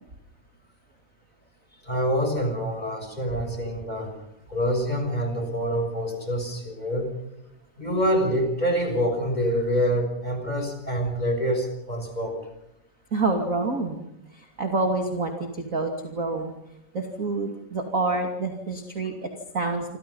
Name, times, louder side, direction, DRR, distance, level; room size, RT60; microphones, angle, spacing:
voice 1, 1.8-4.2 4.5-7.1 7.8-12.4, equal, 10° left, 5 dB, 6.1 m, -26 dB
voice 2, 13.1-16.5 16.9-20.0, right 3 dB, 25° right, 4 dB, 2.1 m, -28 dB
28.0 x 27.5 x 5.6 m, 0.84 s
omnidirectional pair, 4.9 m